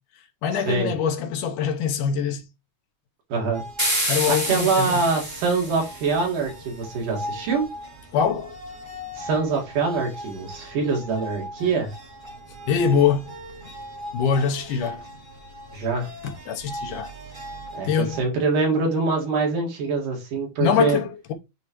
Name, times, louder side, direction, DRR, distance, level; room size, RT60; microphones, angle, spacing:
voice 1, 0.4-2.5 4.0-5.0 8.1-8.6 12.7-13.3 14.1-15.0 16.2-17.1 17.8-18.2 20.6-21.3, left 7 dB, 75° left, 2.3 m, -23 dB
voice 2, 3.3-3.6 4.3-7.6 9.2-11.9 15.7-16.1 17.7-21.0, right 4 dB, 70° right, 3.4 m, -24 dB
sound 1, 3.5-18.2, equal, 35° right, 0.8 m, -39 dB
sound 2, 3.8-6.2, equal, 15° right, 1.1 m, -27 dB
9.7 x 3.2 x 3.0 m
omnidirectional pair, 3.9 m